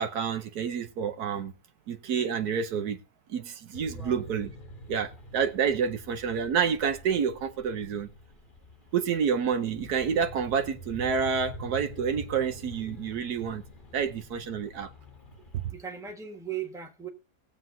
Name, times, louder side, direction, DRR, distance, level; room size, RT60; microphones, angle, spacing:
voice 1, 0.0-1.5 1.9-3.0 3.3-4.5 4.9-8.1 8.9-13.6 13.9-14.9 15.5-15.6, right 7 dB, 75° right, 1.4 m, -28 dB
sound 1, 3.7-15.7, equal, 35° left, 1.2 m, -45 dB
voice 2, 3.9-4.3 15.7-17.1, right 8 dB, ahead, 1.4 m, -38 dB
20.0 x 7.6 x 2.7 m
omnidirectional pair, 1.7 m